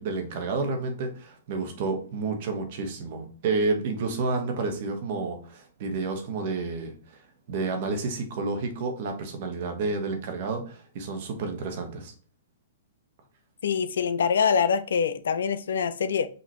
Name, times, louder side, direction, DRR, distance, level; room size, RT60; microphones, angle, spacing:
voice 1, 0.0-6.9 7.5-12.1, right 3 dB, 55° right, 5 dB, 1.1 m, -30 dB
voice 2, 13.6-16.3, left 6 dB, 75° left, 14 dB, 0.4 m, -24 dB
5.3 x 2.8 x 2.9 m, 0.43 s
hypercardioid pair, 120°, 0 cm